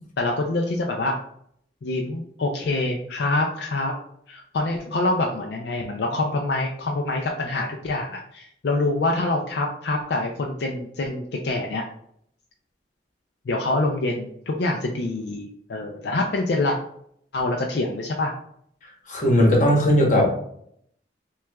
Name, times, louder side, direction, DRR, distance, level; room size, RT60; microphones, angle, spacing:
voice 1, 0.2-1.2 1.8-3.9 4.3-11.8 13.5-16.8 17.3-18.3, left 2 dB, 65° left, 1 dB, 0.4 m, -25 dB
voice 2, 19.1-20.3, equal, 45° left, -1 dB, 1.0 m, -18 dB
6.0 x 2.3 x 2.3 m, 0.70 s
head